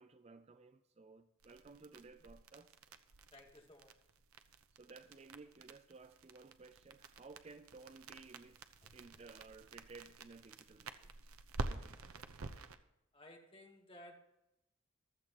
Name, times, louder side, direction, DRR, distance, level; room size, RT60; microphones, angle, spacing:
voice 1, 0.0-2.7 4.7-8.6 8.9-11.3 11.6-12.3, right 3 dB, 30° right, 0.4 m, -57 dB
sound 1, 1.4-12.8, right 3 dB, 85° right, 0.8 m, -49 dB
voice 2, 3.3-4.0 8.8-8.9 13.1-14.2, left 1 dB, 25° left, 1.4 m, -57 dB
15.0 x 12.5 x 2.9 m
head